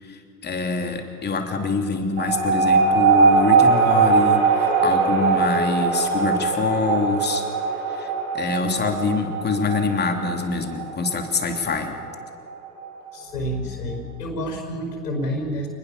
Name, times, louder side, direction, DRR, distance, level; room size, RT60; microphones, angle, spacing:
voice 1, 0.0-7.4 7.9-12.0, left 4 dB, 20° left, 4 dB, 3.2 m, -25 dB
sound 1, 2.2-13.1, right 5 dB, 60° right, 6.5 m, -21 dB
voice 2, 13.1-15.7, equal, 80° left, 3 dB, 5.1 m, -29 dB
28.0 x 20.5 x 6.8 m, 2.3 s
figure-of-eight pair, 85°, 47 cm